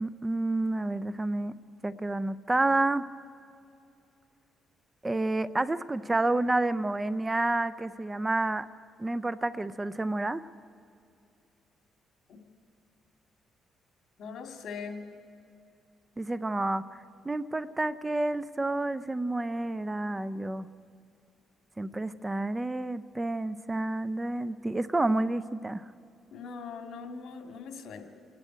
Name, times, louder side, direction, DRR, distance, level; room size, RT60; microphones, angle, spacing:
voice 1, 0.0-1.6 1.8-3.1 5.0-8.7 9.0-10.4 16.2-16.8 17.2-20.7 21.8-25.8, right 2 dB, 15° right, 15 dB, 0.5 m, -29 dB
voice 2, 14.2-15.0 26.3-28.0, left 5 dB, 70° left, 5 dB, 2.5 m, -41 dB
28.5 x 11.0 x 9.2 m, 2.5 s
cardioid pair, 90°, 0 cm